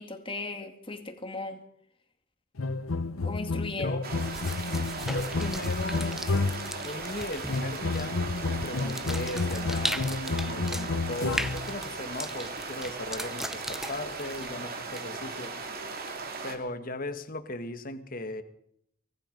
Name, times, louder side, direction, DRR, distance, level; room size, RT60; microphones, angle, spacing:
voice 1, 0.0-1.6 3.2-4.0, left 2 dB, 25° left, 6 dB, 2.4 m, -36 dB
sound 1, 2.6-6.8 7.5-11.8, left 3 dB, 90° left, 0.9 m, -31 dB
voice 2, 3.8-4.1 4.9-6.2 6.8-8.2 8.4-15.6 16.4-18.4, left 2 dB, 45° left, 9 dB, 1.7 m, -37 dB
sound 2, 4.0-16.6, right 4 dB, 45° right, 2.9 m, -38 dB
sound 3, 4.2-15.4, equal, ahead, 0.7 m, -39 dB
24.5 x 20.0 x 5.4 m, 0.69 s
head